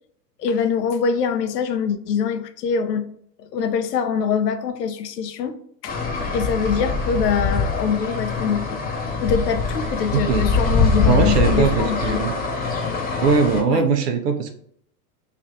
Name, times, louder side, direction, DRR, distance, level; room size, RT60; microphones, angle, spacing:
voice 1, 0.4-3.1 3.5-5.9 6.3-8.8 9.2-12.2 13.7-13.8, left 6 dB, 80° left, 0.7 m, -24 dB
sound 1, 5.9-13.6, left 4 dB, 20° left, 0.7 m, -23 dB
voice 2, 10.1-10.5 11.0-12.3 13.2-14.5, right 5 dB, 75° right, 0.8 m, -20 dB
3.3 x 2.5 x 4.0 m
hypercardioid pair, 100°, 48 cm